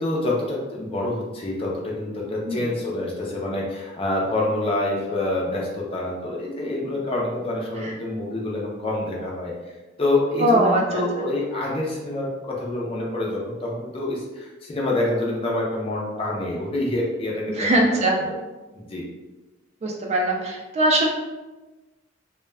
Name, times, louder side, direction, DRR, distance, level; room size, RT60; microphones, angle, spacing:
voice 1, 0.0-9.5 10.0-17.7 18.7-19.0, left 2 dB, 30° left, -3 dB, 0.5 m, -27 dB
voice 2, 10.4-11.3 17.5-18.3 19.8-21.1, right 1 dB, 35° right, 0 dB, 0.3 m, -21 dB
2.2 x 2.1 x 3.3 m, 1.2 s
head